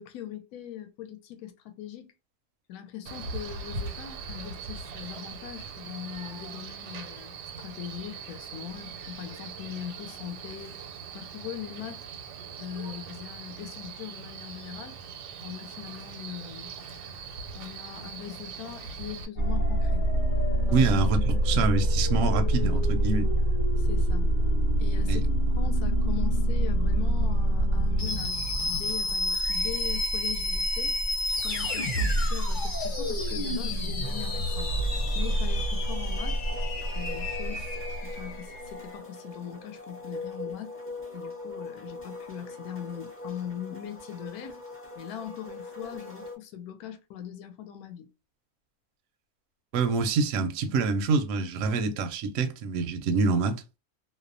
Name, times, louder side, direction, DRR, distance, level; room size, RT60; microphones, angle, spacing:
voice 1, 0.0-2.1 2.7-10.7 11.1-12.1 12.6-15.0 15.4-16.7 17.5-20.1 20.7-20.8 23.8-24.3 24.8-31.0 31.3-34.7 35.1-36.4 36.9-40.7 41.1-44.6 44.9-48.1, left 10 dB, 75° left, 1.0 m, -41 dB
Male speech man speaking, 3.1-19.3, right 5 dB, 85° right, 1.1 m, -41 dB
sound 1, 19.4-38.7, equal, 45° left, 0.7 m, -26 dB
voice 2, 20.7-23.3 25.1-25.2 49.7-53.6, right 4 dB, 70° right, 0.8 m, -26 dB
sound 2, 34.0-46.4, left 2 dB, 20° left, 0.4 m, -42 dB
2.7 x 2.0 x 2.5 m
omnidirectional pair, 1.7 m